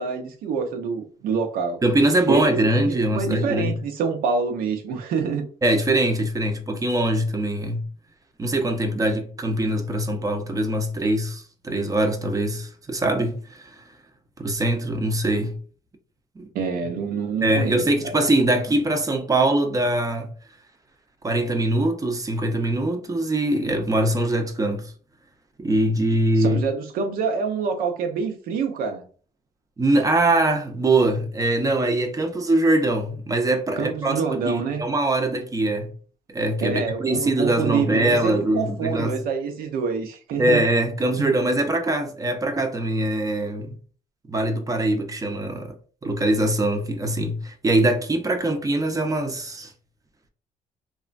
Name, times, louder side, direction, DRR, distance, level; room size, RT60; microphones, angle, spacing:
voice 1, 0.0-1.8 2.3-5.4 16.5-18.1 26.4-29.0 33.8-34.8 36.6-40.6 41.2-41.3, right 5 dB, 85° right, 0.6 m, -26 dB
voice 2, 1.8-3.7 5.6-7.8 8.4-13.8 14.4-15.6 16.4-16.5 17.4-20.3 21.2-24.9 25.6-26.6 29.8-35.9 36.3-39.2 40.4-43.8 44.3-45.8 46.0-49.7, right 1 dB, 25° right, 0.5 m, -22 dB
3.0 x 2.2 x 2.5 m
cardioid pair, 95°, 15 cm